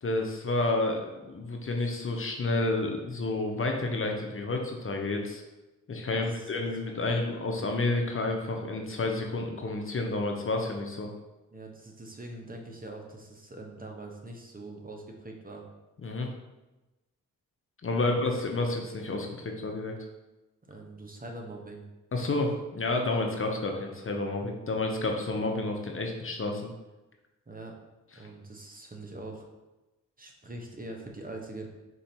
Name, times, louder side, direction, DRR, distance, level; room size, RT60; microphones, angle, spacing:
voice 1, 0.0-5.4 5.9-11.1 16.0-16.3 17.8-19.9 22.1-26.7, left 2 dB, 40° left, 2 dB, 0.7 m, -30 dB
voice 2, 6.0-7.3 11.5-15.6 18.0-18.2 20.7-21.8 27.5-27.7 28.1-29.5 30.2-31.7, right 2 dB, 25° right, 1 dB, 0.9 m, -43 dB
4.5 x 2.7 x 4.3 m, 1.1 s
cardioid pair, 50°, 34 cm